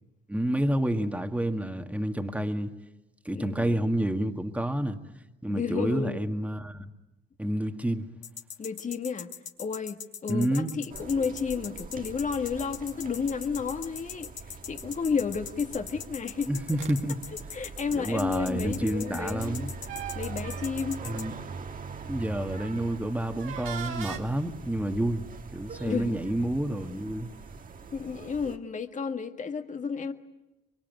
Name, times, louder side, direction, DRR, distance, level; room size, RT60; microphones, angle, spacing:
voice 1, 0.3-2.7 3.3-5.0 5.4-6.9 7.4-8.1 10.3-10.7 16.5-17.2 17.9-19.7 21.0-21.3 22.1-25.2 25.5-27.3, right 1 dB, 5° right, 1.8 m, -29 dB
voice 2, 3.3-3.9 5.4-6.2 8.6-9.3 9.6-14.3 14.7-16.6 17.5-19.7 20.2-21.1 25.8-26.2 27.9-30.1, left 5 dB, 40° left, 1.8 m, -32 dB
sound 1, 8.2-21.2, left 8 dB, 70° left, 3.7 m, -40 dB
sound 2, 10.9-28.6, right 4 dB, 45° right, 1.6 m, -42 dB
sound 3, 16.8-17.0 19.0-21.6 22.2-22.4 23.3-24.2, right 8 dB, 90° right, 1.9 m, -40 dB
24.0 x 23.5 x 9.3 m
cardioid pair, 90°, 20 cm